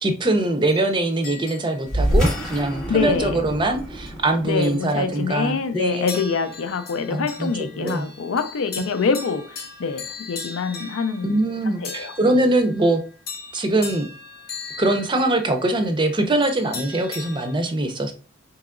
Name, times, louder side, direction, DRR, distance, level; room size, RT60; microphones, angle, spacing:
voice 1, 0.0-6.2 7.1-8.1 8.8-8.9 11.2-13.0 13.5-14.1 14.8-18.1, right 2 dB, 25° right, 0.5 m, -22 dB
sound 1, 0.6-3.0 3.8-4.1 4.6-5.5 6.1-17.5, left 4 dB, 50° left, 0.8 m, -39 dB
sound 2, 1.9-6.7, equal, 5° left, 0.8 m, -27 dB
voice 2, 2.9-3.4 4.4-12.4, left 5 dB, 70° left, 0.4 m, -25 dB
4.5 x 2.9 x 2.4 m
head